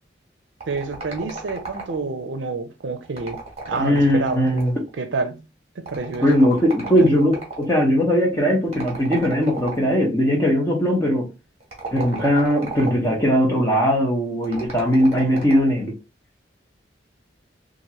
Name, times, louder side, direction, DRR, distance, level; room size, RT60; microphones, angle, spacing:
sound 1, 0.6-2.2 3.0-4.9 5.9-7.7 8.7-10.0 11.6-13.2 14.4-15.8, right 3 dB, 35° right, 1.1 m, -35 dB
voice 1, 0.7-3.4 3.7-4.5 5.0-5.4 5.8-6.3 7.0-7.3, right 4 dB, 80° right, 0.5 m, -28 dB
voice 2, 3.7-4.7 6.2-11.2 11.9-15.9, equal, 15° left, 0.9 m, -19 dB
2.9 x 2.5 x 2.9 m
head